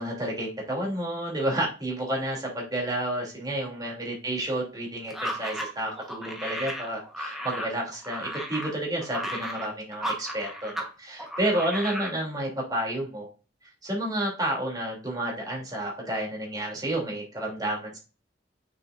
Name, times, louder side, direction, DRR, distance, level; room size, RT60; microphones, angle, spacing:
voice 1, 0.0-13.3 13.8-18.0, right 1 dB, 20° right, -2 dB, 3.1 m, -30 dB
sound 1, 5.1-10.9 11.2-12.1, equal, ahead, 1.3 m, -35 dB
6.7 x 6.5 x 2.6 m, 0.34 s
head